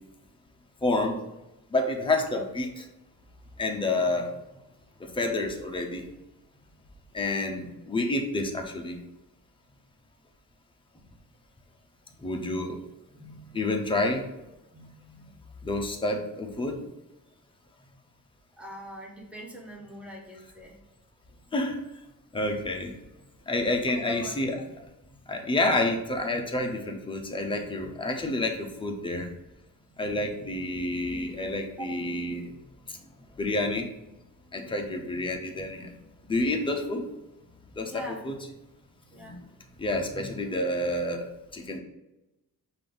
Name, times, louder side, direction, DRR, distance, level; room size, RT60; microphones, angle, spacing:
voice 1, 0.8-1.2 1.7-2.8 3.6-4.3 5.0-6.0 7.1-9.0 12.2-12.8 13.5-14.2 15.6-16.8 21.5-21.8 22.3-22.9 23.5-24.6 25.3-29.3 30.0-32.5 33.4-33.9 34.5-35.9 36.3-37.1 37.8-38.3 39.2-39.4 39.8-41.8, left 2 dB, 15° left, 2 dB, 0.6 m, -29 dB
voice 2, 12.2-12.6 13.1-13.6 14.7-15.3 18.6-20.8 23.8-24.6 30.1-30.4 31.8-31.9 34.6-35.0 36.4-36.5 37.9-38.2 39.1-39.4, equal, 5° right, -1 dB, 0.9 m, -44 dB
5.2 x 2.6 x 3.8 m, 0.96 s
wide cardioid pair, 150°, 34 cm